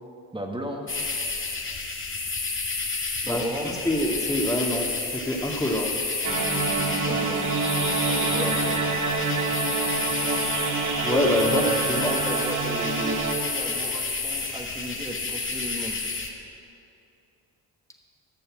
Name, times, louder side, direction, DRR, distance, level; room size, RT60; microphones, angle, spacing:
voice 1, 0.3-0.9 3.2-3.8 7.0-7.4 8.1-8.8 11.4-16.0, right 1 dB, 10° right, 1 dB, 1.8 m, -34 dB
sound 1, 0.9-16.3, left 3 dB, 30° left, 2.0 m, -30 dB
voice 2, 3.2-6.0 11.0-11.6 11.9-12.1, left 1 dB, 10° left, 0 dB, 2.1 m, -26 dB
sound 2, 6.2-13.3, right 4 dB, 50° right, 1.8 m, -26 dB
13.5 x 6.9 x 7.7 m, 2.8 s
supercardioid pair, 65°, 41 cm